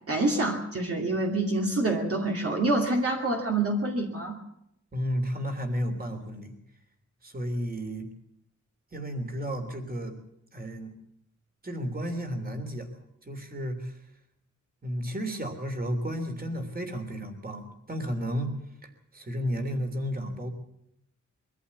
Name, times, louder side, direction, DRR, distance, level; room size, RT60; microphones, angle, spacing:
voice 1, 0.0-4.4, right 2 dB, 50° right, 0 dB, 2.5 m, -27 dB
voice 2, 4.9-6.5 7.2-8.1 8.9-10.2 10.5-10.9 11.6-12.9 13.2-14.0 14.8-18.5 18.8-20.5, equal, 30° right, 6 dB, 3.2 m, -32 dB
23.5 x 14.5 x 8.4 m, 0.78 s
wide cardioid pair, 165°, 30 cm